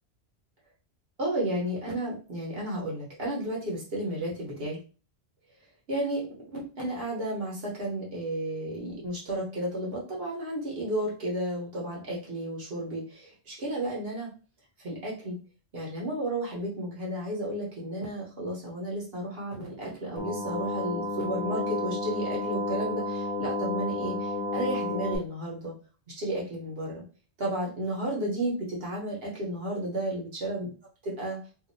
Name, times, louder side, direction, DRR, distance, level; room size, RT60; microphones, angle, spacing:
voice 1, 1.2-4.8 5.9-14.3 14.8-15.4 15.7-25.7 26.1-27.0 27.4-30.7 31.2-31.4, right 1 dB, 65° right, -4 dB, 1.3 m, -33 dB
sound 1, 20.2-25.2, left 2 dB, 45° left, 0.7 m, -31 dB
2.7 x 2.6 x 2.6 m, 0.36 s
omnidirectional pair, 1.1 m